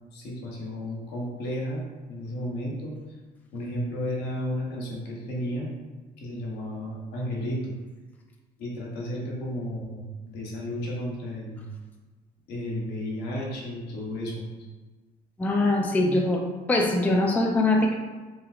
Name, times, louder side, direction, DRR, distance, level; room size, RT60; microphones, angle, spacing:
voice 1, 0.1-1.8 2.1-3.0 3.5-5.7 6.2-7.7 8.6-11.7 12.5-14.5, equal, 75° left, -2 dB, 0.9 m, -33 dB
voice 2, 15.4-16.4 16.7-17.9, left 2 dB, 10° left, 0 dB, 0.3 m, -22 dB
3.1 x 2.8 x 2.3 m, 1.3 s
cardioid pair, 110°, 17 cm